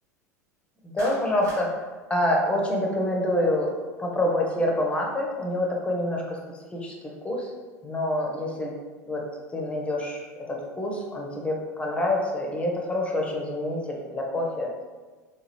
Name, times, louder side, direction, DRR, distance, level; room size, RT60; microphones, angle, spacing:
voice 1, 0.8-1.7 2.1-3.7 4.0-6.4 6.7-6.9 7.2-7.5 7.8-8.7 9.1-9.2 9.5-14.7, left 1 dB, 10° left, 0 dB, 0.8 m, -26 dB
Clapping, 1.0-1.7, equal, 30° right, 1.2 m, -39 dB
3.8 x 2.3 x 3.1 m, 1.4 s
figure-of-eight pair, 75°, 9 cm